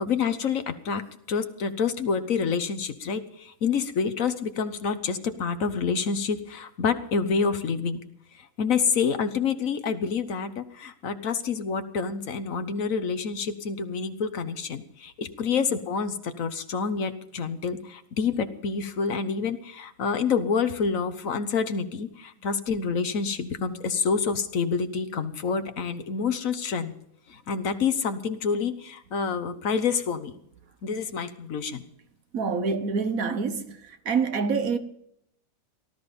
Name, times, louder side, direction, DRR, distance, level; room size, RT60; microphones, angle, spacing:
voice 1, 0.0-8.0 8.3-26.9 27.3-30.3 30.8-31.8, left 5 dB, 70° left, 1.5 m, -28 dB
voice 2, 32.3-34.8, right 5 dB, 80° right, 1.7 m, -26 dB
18.0 x 13.5 x 5.3 m
omnidirectional pair, 1.4 m